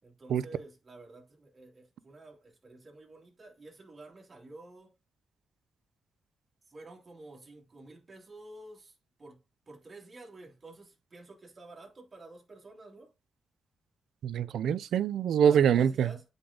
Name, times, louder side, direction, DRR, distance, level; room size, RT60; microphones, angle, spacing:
voice 1, 0.0-4.9 6.7-13.1 15.4-16.2, right 2 dB, 30° right, 2.8 m, -50 dB
voice 2, 14.2-16.1, right 8 dB, 85° right, 0.6 m, -25 dB
8.7 x 5.3 x 3.9 m
wide cardioid pair, 135°, 0 cm